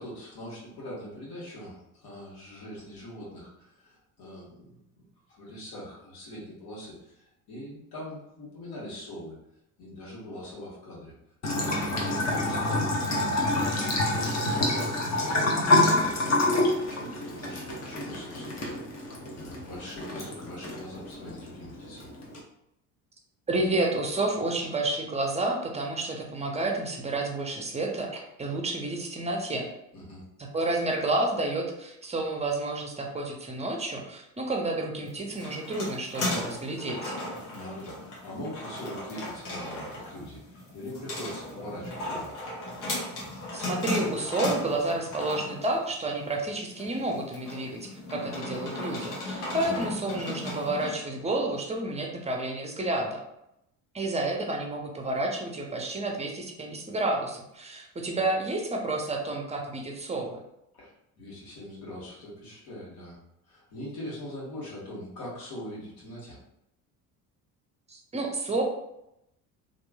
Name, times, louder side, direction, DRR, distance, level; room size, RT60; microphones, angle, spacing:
voice 1, 0.0-5.0 5.3-9.3 9.8-11.1 11.5-13.0 13.5-16.1 16.8-22.1 29.9-30.2 37.5-42.3 49.5-49.8 60.7-63.2 63.4-66.4, equal, 60° left, -7 dB, 1.5 m, -42 dB
Bathtub (filling or washing) / Trickle dribble, 11.4-22.4, left 2 dB, 35° left, 0.8 m, -27 dB
voice 2, 23.5-29.7 30.5-37.1 43.5-53.2 53.9-60.4 67.9-68.6, right 2 dB, 15° right, 1 dB, 0.6 m, -30 dB
sound 1, 35.0-50.9, left 1 dB, 80° left, 0.9 m, -36 dB
2.9 x 2.4 x 2.2 m, 0.83 s
hypercardioid pair, 60°, 44 cm